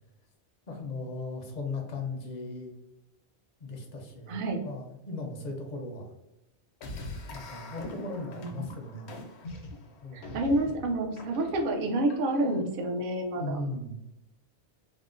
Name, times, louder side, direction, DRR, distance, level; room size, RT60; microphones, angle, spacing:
voice 1, 0.7-2.7 3.6-6.1 7.3-9.1 10.0-10.2 13.3-14.0, left 2 dB, 50° left, 2 dB, 0.6 m, -37 dB
voice 2, 4.3-4.6 8.4-8.6 10.1-13.6, right 1 dB, 60° right, 3 dB, 0.7 m, -29 dB
sound 1, 6.8-12.6, left 2 dB, 80° left, 0.9 m, -43 dB
3.6 x 2.1 x 2.4 m, 0.91 s
omnidirectional pair, 1.1 m